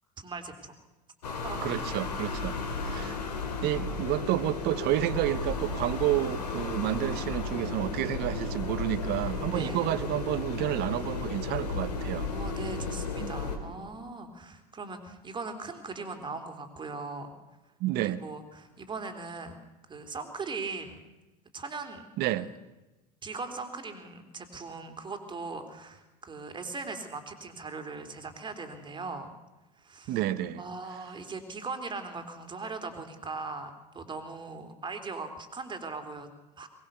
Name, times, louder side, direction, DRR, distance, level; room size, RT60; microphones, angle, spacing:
voice 1, 0.2-0.7 1.4-1.9 2.4-3.1 9.5-9.9 12.3-17.3 18.0-19.6 19.9-21.0 21.5-22.0 22.4-22.5 23.2-29.3 29.8-30.2 30.6-36.7, right 3 dB, 25° right, 7 dB, 3.4 m, -39 dB
sound 1, 1.2-13.6, left 4 dB, 80° left, 3.1 m, -34 dB
voice 2, 1.6-2.6 2.8-3.2 3.6-12.3 13.2-13.3 17.8-18.2 22.2-22.5 30.1-30.6, right 14 dB, 50° right, 15 dB, 1.2 m, -30 dB
22.5 x 19.0 x 6.9 m, 1.1 s
hypercardioid pair, 80°, 21 cm